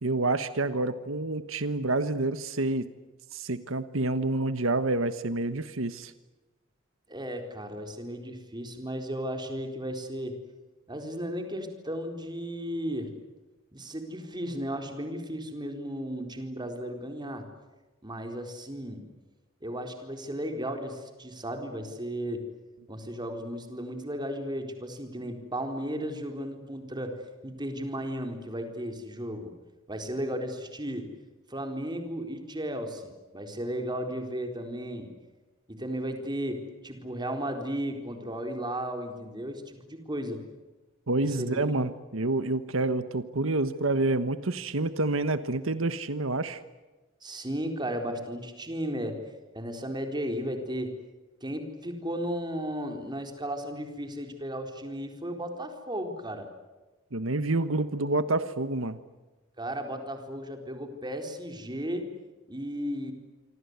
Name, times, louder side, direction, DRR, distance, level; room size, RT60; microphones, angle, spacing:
voice 1, 0.0-2.9 3.3-6.1 41.1-46.6 57.1-59.0, right 2 dB, 85° right, 12 dB, 1.3 m, -28 dB
voice 2, 7.1-10.4 10.9-13.1 13.7-17.5 18.0-19.0 19.6-22.5 22.9-27.2 27.4-29.5 29.9-31.1 31.5-35.1 35.7-40.4 41.2-41.8 47.2-49.2 49.5-50.9 51.4-56.5 59.6-62.1 62.5-63.1, equal, 20° right, 5 dB, 4.2 m, -35 dB
27.5 x 24.5 x 8.2 m, 1.2 s
head